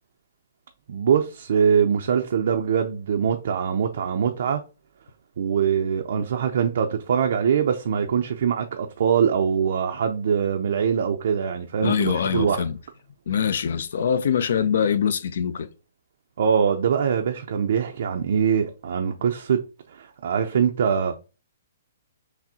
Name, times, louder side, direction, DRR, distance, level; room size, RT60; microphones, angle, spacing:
voice 1, 0.9-4.6 5.4-12.7 16.4-19.6 19.9-21.2, right 7 dB, 60° right, 0.4 m, -23 dB
voice 2, 11.8-12.7 13.3-15.7, left 7 dB, 65° left, 0.5 m, -23 dB
5.8 x 2.0 x 2.7 m
hypercardioid pair, 160°, 0 cm